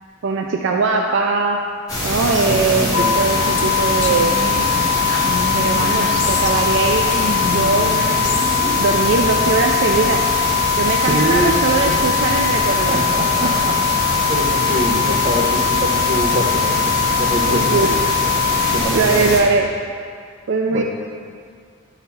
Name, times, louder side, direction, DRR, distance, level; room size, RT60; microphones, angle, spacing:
voice 1, 0.2-1.6 2.0-4.3 5.5-7.2 7.5-8.4 8.8-10.3 10.8-13.1 13.4-13.5 17.5-17.9 18.6-19.7 20.5-20.8, right 4 dB, 65° right, 2 dB, 0.4 m, -20 dB
sound 1, 1.9-19.4, left 1 dB, 20° left, 1.8 m, -23 dB
voice 2, 2.3-3.1 11.0-12.1 12.6-16.8 17.2-18.0 18.6-19.3 20.7-20.8, right 1 dB, 40° right, 1 dB, 0.8 m, -24 dB
sound 2, 2.9-18.8, left 8 dB, 85° left, 0.9 m, -21 dB
Female speech woman speaking, 3.6-6.8 7.1-8.6, left 3 dB, 60° left, 0.7 m, -28 dB
11.0 x 4.0 x 4.2 m, 2.1 s
head